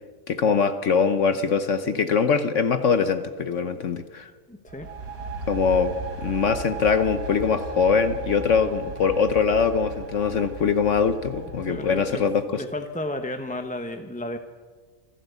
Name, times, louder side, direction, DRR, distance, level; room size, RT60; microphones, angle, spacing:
voice 1, 0.3-4.3 5.5-5.9 6.2-12.6, left 5 dB, 60° left, 11 dB, 1.2 m, -22 dB
voice 2, 4.5-4.9 11.7-12.2 12.5-14.4, left 1 dB, 5° left, 6 dB, 0.7 m, -33 dB
sound 1, 4.7-12.4, right 3 dB, 65° right, 2.2 m, -36 dB
27.0 x 12.0 x 8.2 m, 1.5 s
omnidirectional pair, 1.6 m